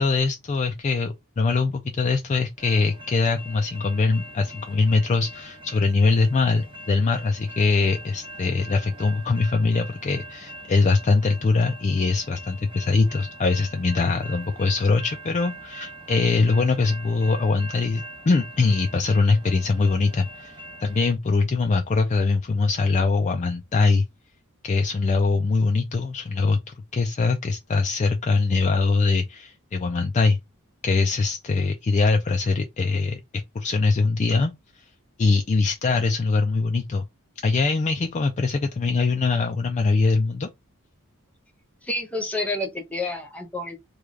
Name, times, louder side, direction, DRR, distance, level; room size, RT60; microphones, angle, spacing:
voice 1, 0.0-24.0 24.6-30.4 30.8-34.5 35.2-37.1 37.4-40.5, left 4 dB, 30° left, 0.3 m, -22 dB
sound 1, 2.6-21.1, right 1 dB, 25° right, 0.6 m, -42 dB
voice 2, 41.8-43.8, left 2 dB, 5° left, 0.9 m, -29 dB
3.2 x 2.3 x 3.6 m
head